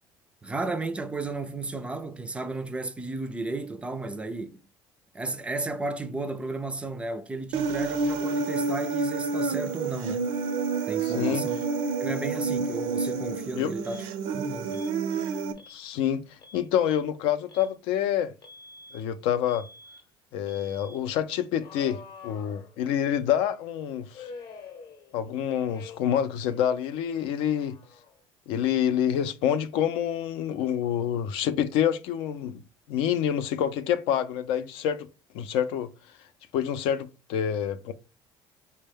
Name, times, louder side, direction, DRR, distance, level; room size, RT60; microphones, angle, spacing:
voice 1, 0.4-4.6 5.1-10.3 10.9-11.6 12.0-14.1 14.3-14.8, right 3 dB, 10° right, 0.3 m, -33 dB
Human voice, 7.5-15.5, right 4 dB, 85° right, 0.5 m, -29 dB
voice 2, 11.0-11.4 13.6-13.7 15.7-18.3 18.9-19.7 20.3-24.3 25.1-27.8 28.5-32.6 32.9-35.1 35.3-35.9 36.5-37.9, left 9 dB, 85° left, 0.5 m, -27 dB
Alarm, 13.8-14.1 14.7-14.9 15.6-15.8 16.3-16.6 17.5-17.7 18.4-19.0 19.5-20.0 20.5-21.0 21.6-23.1 24.1-25.3 25.7-26.2 26.5-28.2, left 4 dB, 50° left, 0.7 m, -47 dB
4.3 x 2.1 x 3.4 m
cardioid pair, 140°, 9 cm